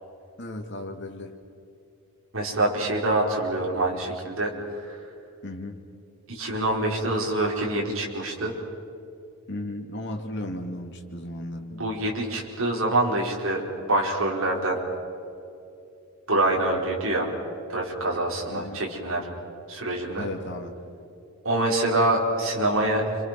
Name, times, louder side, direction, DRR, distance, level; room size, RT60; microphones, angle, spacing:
voice 1, 0.4-1.3 5.4-5.8 9.5-11.7 18.5-18.8 20.2-20.8, left 1 dB, 50° left, 3 dB, 2.7 m, -35 dB
voice 2, 2.3-5.0 6.3-8.5 11.7-14.8 16.3-17.3 17.7-19.3 19.7-20.3 21.4-23.1, right 1 dB, 60° right, -2 dB, 5.0 m, -25 dB
29.5 x 25.5 x 6.2 m, 2.6 s
head